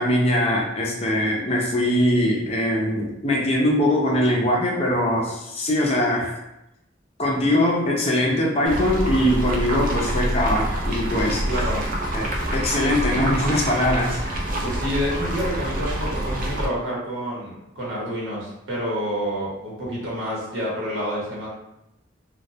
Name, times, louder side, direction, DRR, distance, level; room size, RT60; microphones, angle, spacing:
voice 1, 0.0-6.4 7.2-11.4 12.1-14.2, left 1 dB, 35° left, -2 dB, 0.5 m, -22 dB
sound 1, 8.6-16.7, right 1 dB, 50° right, 0.4 m, -26 dB
voice 2, 11.5-11.8 14.6-21.5, equal, 85° right, -7 dB, 1.0 m, -28 dB
2.2 x 2.1 x 2.7 m, 0.88 s
head